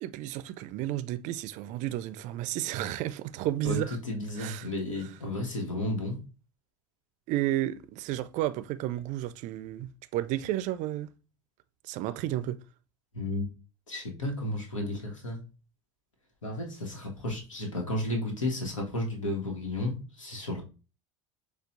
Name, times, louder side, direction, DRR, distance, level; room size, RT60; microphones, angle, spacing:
voice 1, 0.0-4.0 4.4-4.7 5.0-5.1 7.3-11.1 11.8-12.6, right 14 dB, 50° right, 0.4 m, -32 dB
voice 2, 4.0-6.2 13.1-13.5 13.9-15.4 16.4-20.6, left 1 dB, 90° left, 1.1 m, -33 dB
6.7 x 2.3 x 2.6 m
hypercardioid pair, 75°, 16 cm